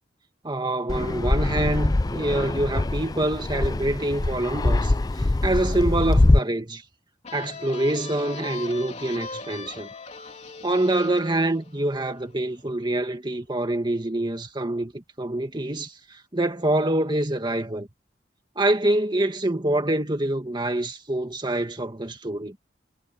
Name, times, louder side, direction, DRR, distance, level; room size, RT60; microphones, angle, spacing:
voice 1, 0.4-4.9 5.4-6.8 7.3-9.9 10.6-17.9 18.6-22.6, right 1 dB, 25° right, 2.0 m, -26 dB
Fixed-wing aircraft airplane, 0.9-6.4, left 2 dB, 20° left, 0.4 m, -23 dB
sound 1, 7.2-12.7, left 4 dB, 40° left, 3.2 m, -40 dB
head